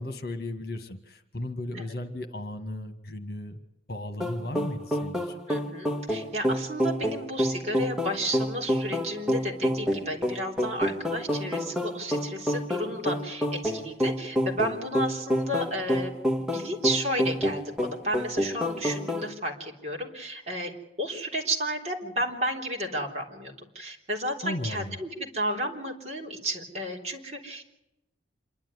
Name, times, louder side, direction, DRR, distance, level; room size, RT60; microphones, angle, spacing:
voice 1, 0.0-3.6 3.9-5.4 24.4-25.0, left 1 dB, 55° left, 8 dB, 1.7 m, -35 dB
sound 1, 4.2-19.3, equal, 5° right, 1.6 m, -28 dB
voice 2, 5.5-16.1 16.4-20.7 21.0-27.7, equal, 35° right, 0 dB, 3.6 m, -32 dB
27.0 x 11.5 x 9.8 m, 0.90 s
head